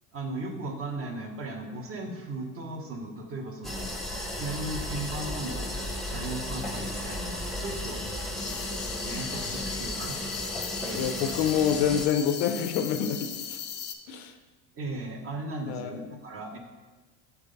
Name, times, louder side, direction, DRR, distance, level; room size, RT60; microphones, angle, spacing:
voice 1, 0.1-3.9 4.4-5.7 6.1-8.0 9.0-10.2 10.8-11.2 14.7-16.6, right 2 dB, 35° right, 3 dB, 1.0 m, -36 dB
sound 1, 3.6-12.1, left 1 dB, ahead, 0.8 m, -34 dB
sound 2, 8.4-13.9, left 7 dB, 30° left, 0.5 m, -38 dB
voice 2, 10.9-13.6 14.1-14.3 15.7-16.0, left 8 dB, 70° left, 8 dB, 0.7 m, -27 dB
6.0 x 3.3 x 5.2 m, 1.3 s
supercardioid pair, 100°, 37 cm